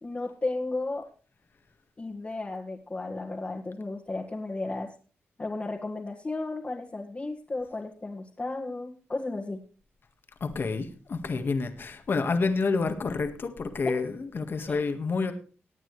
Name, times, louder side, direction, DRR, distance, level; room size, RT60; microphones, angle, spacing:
voice 1, 0.0-1.1 2.0-4.9 5.4-9.6 13.9-14.0 14.7-14.8, left 2 dB, 30° left, 1.9 m, -34 dB
voice 2, 10.4-15.3, left 4 dB, 55° left, 1.8 m, -29 dB
19.0 x 9.0 x 3.3 m
cardioid pair, 70°, 4 cm